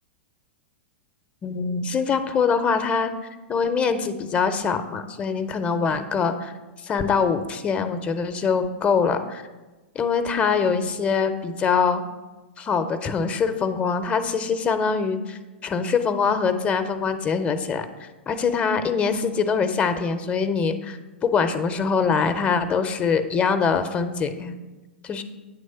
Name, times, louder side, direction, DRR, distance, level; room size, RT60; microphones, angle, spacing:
voice 1, 1.4-3.1 3.5-6.5 6.8-9.4 9.9-12.0 12.6-24.5 25.0-25.2, left 5 dB, 20° left, 10 dB, 0.4 m, -23 dB
9.1 x 3.2 x 5.3 m, 1.2 s
figure-of-eight pair, 100°, 6 cm